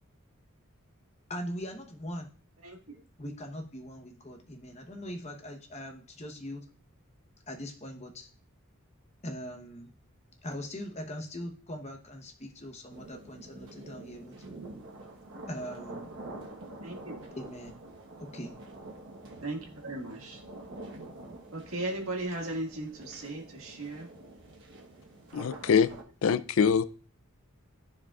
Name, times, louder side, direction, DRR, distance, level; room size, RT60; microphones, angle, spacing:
voice 1, 1.3-2.3 3.2-6.7 7.5-8.3 9.2-9.9 10.4-14.3 15.5-16.1 17.3-17.8 18.2-18.6, equal, 30° left, 4 dB, 1.0 m, -41 dB
sound 1, 12.9-26.0, right 2 dB, 60° right, 1.2 m, -47 dB
voice 2, 16.8-17.2 19.4-20.4 21.5-24.1, right 2 dB, 75° right, 1 dB, 1.7 m, -36 dB
voice 3, 25.3-25.9 26.2-26.8, left 6 dB, 65° left, 13 dB, 0.4 m, -24 dB
14.0 x 4.8 x 2.4 m, 0.39 s
head